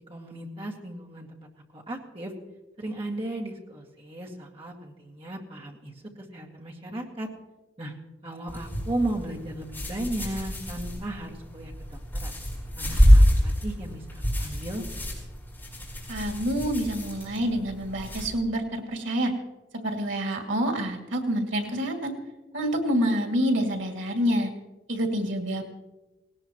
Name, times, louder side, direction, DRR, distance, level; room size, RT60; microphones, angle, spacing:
voice 1, 0.1-2.3 2.8-5.9 6.3-7.3 7.8-7.9 8.2-12.3 12.8-14.8, right 1 dB, 30° right, -2 dB, 2.0 m, -35 dB
sound 1, 8.5-18.3, equal, 10° left, 4.5 m, -26 dB
voice 2, 16.1-19.3 19.7-22.1 22.5-24.5 24.9-25.6, equal, 90° right, 4 dB, 2.3 m, -27 dB
18.5 x 18.0 x 3.0 m, 1.1 s
head